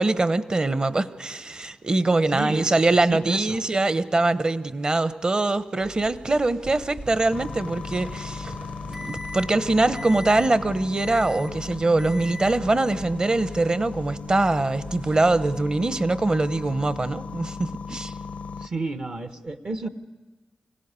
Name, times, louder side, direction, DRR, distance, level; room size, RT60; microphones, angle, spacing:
voice 1, 0.0-8.5 8.9-18.1, right 2 dB, 35° right, 13 dB, 1.0 m, -23 dB
voice 2, 2.3-2.8 3.1-3.6 18.6-19.9, right 3 dB, 55° right, 8 dB, 1.1 m, -31 dB
sound 1, 5.8-15.6, right 3 dB, 70° right, 3.3 m, -45 dB
Microwave oven, 7.0-9.6 9.9-10.5 11.0-11.6 12.0-12.6, left 1 dB, 15° right, 0.6 m, -40 dB
sound 2, 7.3-18.7, left 5 dB, 80° left, 0.6 m, -37 dB
25.5 x 17.0 x 8.3 m, 1.2 s
cardioid pair, 60°, 2 cm